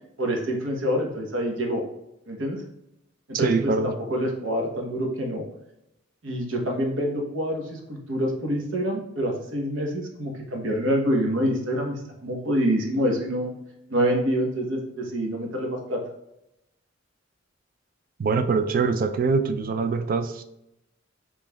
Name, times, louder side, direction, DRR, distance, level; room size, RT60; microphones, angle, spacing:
voice 1, 0.2-1.8 2.3-2.6 3.3-5.5 6.2-13.5 13.9-16.0, equal, 75° right, 0.9 m, -26 dB
voice 2, 3.3-3.9 18.2-20.4, right 4 dB, 45° right, 0.3 m, -23 dB
5.3 x 3.2 x 2.2 m
head